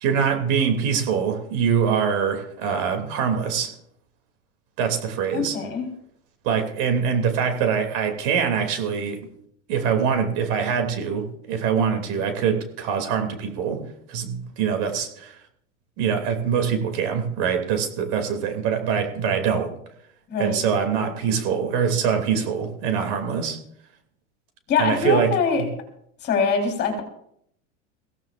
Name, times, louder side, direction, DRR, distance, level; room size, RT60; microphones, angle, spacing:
voice 1, 0.0-3.7 4.8-5.6 6.4-9.3 9.7-13.8 14.1-15.4 16.0-19.7 20.4-23.6 24.8-25.3, right 7 dB, 55° right, 5 dB, 2.8 m, -24 dB
voice 2, 5.3-5.9 20.3-20.6 24.7-25.7 26.2-27.0, left 5 dB, 30° left, 4 dB, 4.0 m, -23 dB
23.0 x 16.5 x 2.5 m, 0.72 s
supercardioid pair, 145°, 35 cm